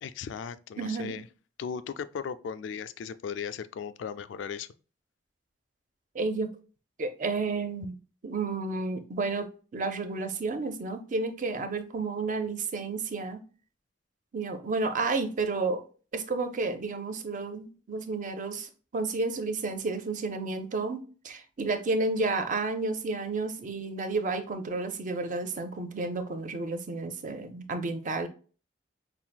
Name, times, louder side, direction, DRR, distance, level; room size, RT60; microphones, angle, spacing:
voice 1, 0.0-1.2 1.6-4.7, left 6 dB, 85° left, 0.3 m, -37 dB
voice 2, 0.8-1.2 6.1-6.5 7.0-8.0 8.2-13.4 14.3-15.8 16.1-28.3, right 3 dB, 45° right, 0.6 m, -31 dB
5.6 x 2.6 x 2.2 m
head